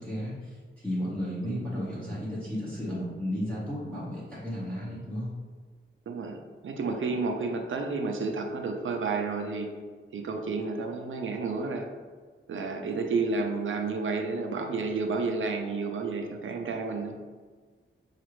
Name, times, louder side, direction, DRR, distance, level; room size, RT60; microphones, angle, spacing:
voice 1, 0.0-5.3, equal, 5° left, -9 dB, 0.7 m, -34 dB
voice 2, 6.1-9.7 10.1-11.9 12.5-17.1, right 4 dB, 70° right, 3 dB, 0.5 m, -31 dB
5.9 x 2.4 x 3.0 m, 1.5 s
wide cardioid pair, 160°, 21 cm